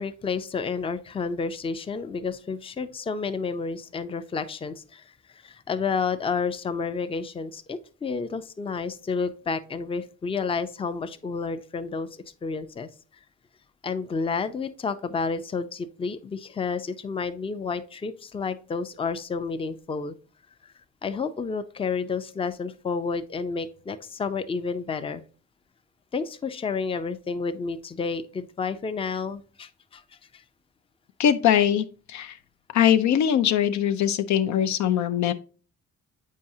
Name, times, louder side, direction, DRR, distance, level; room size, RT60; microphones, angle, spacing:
voice 1, 0.0-5.0 5.3-12.9 13.8-20.1 21.0-25.2 26.1-30.0 30.3-30.4, left 5 dB, 20° left, 10 dB, 0.5 m, -30 dB
voice 2, 31.2-32.4 32.7-35.3, left 10 dB, 70° left, 9 dB, 0.5 m, -22 dB
7.3 x 4.7 x 2.7 m, 0.37 s
cardioid pair, 90°, 30 cm